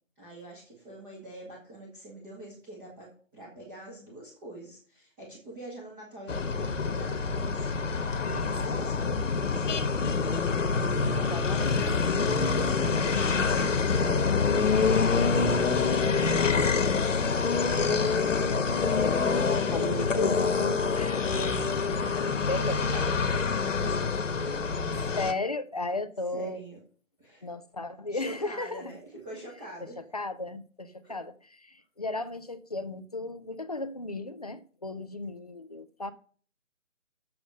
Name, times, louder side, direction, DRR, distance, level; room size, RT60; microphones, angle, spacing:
voice 1, 0.2-9.7 11.0-13.6 14.0-14.6 15.3-16.5 17.0-18.7 19.1-20.1 21.3-24.9 26.3-26.8 27.2-27.5 28.1-30.0 31.0-31.1, right 2 dB, 15° right, 1.9 m, -44 dB
sound 1, 6.3-25.3, left 5 dB, 65° left, 1.4 m, -26 dB
voice 2, 8.2-8.8 11.1-12.0 17.8-17.9 19.7-21.4 22.5-22.8 24.9-26.6 27.4-28.9 30.0-31.3 31.6-36.1, left 2 dB, 30° left, 0.6 m, -35 dB
8.4 x 6.9 x 6.4 m
hypercardioid pair, 165°, 40 cm